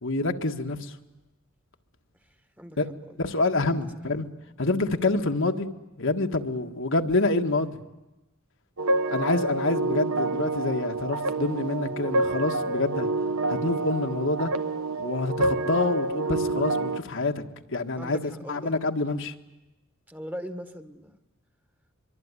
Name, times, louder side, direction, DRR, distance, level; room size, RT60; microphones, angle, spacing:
voice 1, 0.0-0.9 2.8-2.9 3.2-4.2 4.6-5.7 6.0-7.8 9.1-13.1 13.5-14.5 15.0-17.4 17.7-19.3, left 2 dB, 65° left, 5 dB, 1.7 m, -27 dB
sound 1, 8.8-17.0, right 2 dB, 90° right, 1.4 m, -28 dB
voice 2, 18.0-18.7 20.1-21.2, equal, 10° right, 9 dB, 1.6 m, -39 dB
24.5 x 24.0 x 9.8 m, 1.0 s
head